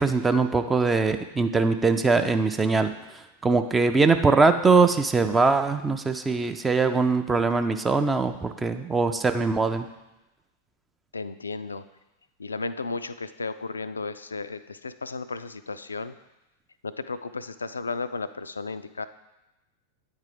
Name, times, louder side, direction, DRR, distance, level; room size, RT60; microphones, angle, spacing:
voice 1, 0.0-9.9, right 4 dB, 15° right, 8 dB, 0.4 m, -22 dB
voice 2, 11.1-11.9 12.4-16.1 16.8-19.1, left 4 dB, 75° left, 13 dB, 0.3 m, -34 dB
8.9 x 3.7 x 4.9 m, 0.99 s
figure-of-eight pair, 90°, 0 cm